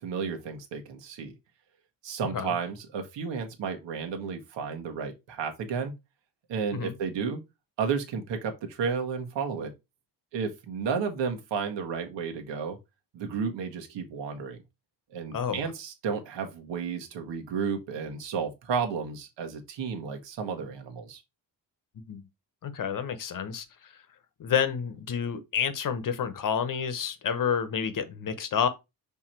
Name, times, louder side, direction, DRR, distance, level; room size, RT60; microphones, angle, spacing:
voice 1, 0.0-1.3 2.0-5.9 6.5-7.4 7.8-9.7 10.3-12.8 13.1-14.6 15.1-21.2, right 6 dB, 90° right, 1.7 m, -32 dB
voice 2, 15.3-15.6 22.0-22.2 22.6-23.7 24.4-28.7, left 7 dB, 50° left, 0.9 m, -29 dB
6.1 x 3.6 x 4.5 m
cardioid pair, 155°, 42 cm